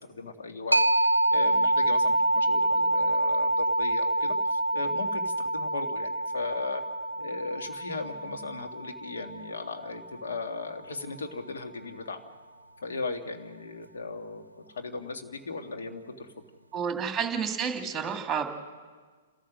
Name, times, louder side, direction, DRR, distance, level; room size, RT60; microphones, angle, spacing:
voice 1, 0.1-6.8 7.2-12.3 12.8-16.3, left 3 dB, 65° left, 4 dB, 1.9 m, -37 dB
sound 1, 0.7-10.1, right 1 dB, 85° right, 0.5 m, -27 dB
voice 2, 16.7-18.5, right 7 dB, 15° right, 5 dB, 2.2 m, -30 dB
29.5 x 14.0 x 6.3 m, 1.5 s
figure-of-eight pair, 115°, 0 cm